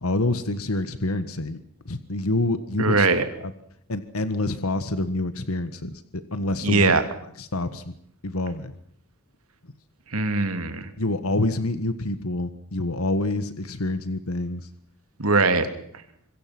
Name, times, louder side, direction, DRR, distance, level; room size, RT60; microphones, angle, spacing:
voice 1, 0.0-1.6 1.8-3.1 3.4-3.5 3.9-7.0 7.4-7.9 8.2-8.7 11.0-14.7, left 2 dB, 80° left, 12 dB, 1.6 m, -27 dB
voice 2, 2.8-3.3 6.6-7.0 10.1-10.9 15.2-15.7, right 3 dB, 80° right, 9 dB, 2.9 m, -21 dB
26.0 x 22.5 x 6.2 m, 0.68 s
head